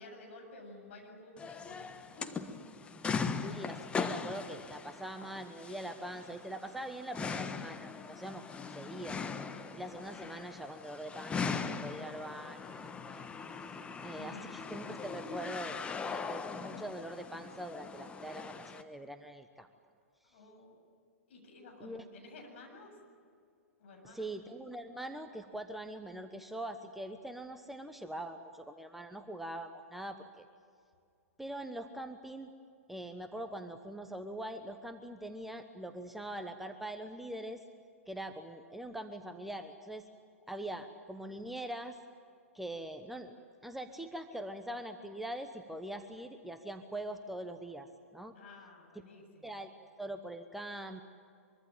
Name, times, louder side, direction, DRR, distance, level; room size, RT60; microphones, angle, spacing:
voice 1, 0.0-1.9 2.2-3.6 14.2-14.4 20.2-20.8 21.3-23.0 23.8-24.3 40.6-40.8 48.3-49.5, left 2 dB, 55° left, 2 dB, 7.7 m, -53 dB
sound 1, 1.4-18.8, left 5 dB, 15° left, 1.2 m, -40 dB
voice 2, 3.3-8.4 8.7-9.2 9.7-13.2 14.0-15.8 16.1-19.7 21.8-22.0 24.0-30.4 31.4-32.5 32.9-37.6 38.1-40.0 40.5-42.0 42.5-43.3 43.6-48.3 49.4-49.7 50.0-51.0, right 1 dB, ahead, 6 dB, 1.1 m, -43 dB
24.5 x 24.0 x 7.6 m, 2.4 s
figure-of-eight pair, 110°, 8 cm